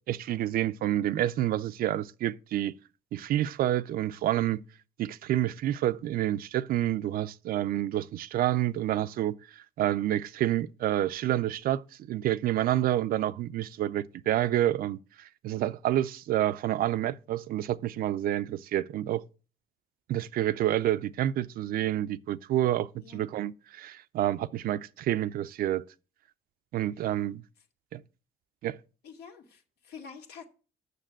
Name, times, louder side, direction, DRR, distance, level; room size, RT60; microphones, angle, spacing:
voice 1, 0.1-2.7 3.1-4.6 5.0-9.3 9.8-11.8 12.1-19.2 20.1-25.8 26.7-27.4 27.9-28.0 28.6-28.8, right 13 dB, 60° right, 0.5 m, -28 dB
voice 2, 29.0-30.4, left 6 dB, 75° left, 2.1 m, -47 dB
6.7 x 6.7 x 7.4 m
cardioid pair, 110°, 17 cm